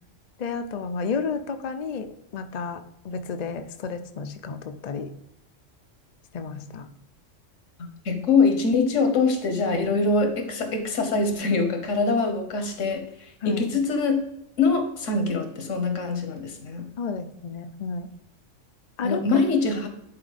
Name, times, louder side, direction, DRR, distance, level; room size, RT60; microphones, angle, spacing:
voice 1, 0.4-5.1 6.3-6.9 13.4-13.7 17.0-18.1 19.0-19.2, left 5 dB, 45° left, 7 dB, 0.5 m, -31 dB
voice 2, 7.8-14.2 14.6-16.9 19.0-19.9, left 4 dB, 75° left, 6 dB, 1.4 m, -24 dB
10.5 x 4.2 x 4.1 m, 0.83 s
omnidirectional pair, 1.3 m